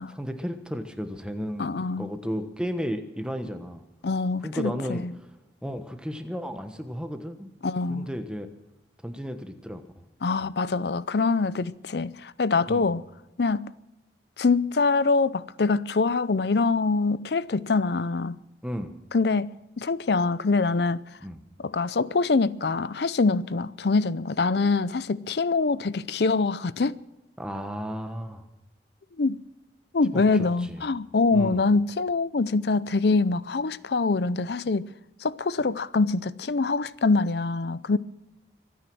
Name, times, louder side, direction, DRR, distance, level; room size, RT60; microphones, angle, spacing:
voice 1, 0.1-1.7 2.0-3.8 4.4-5.0 5.6-7.5 7.9-8.5 9.0-9.8 10.4-10.5 12.7-12.9 18.6-18.9 21.2-21.4 27.4-28.4 30.1-30.8 31.3-31.6, equal, 5° right, 1.2 m, -33 dB
voice 2, 1.6-2.1 4.0-5.1 7.6-8.1 10.2-13.0 13.4-13.7 14.4-18.4 19.1-21.0 21.6-27.0 29.2-29.4 29.9-34.9 35.2-38.0, left 3 dB, 65° left, 0.6 m, -24 dB
24.5 x 9.4 x 6.2 m
head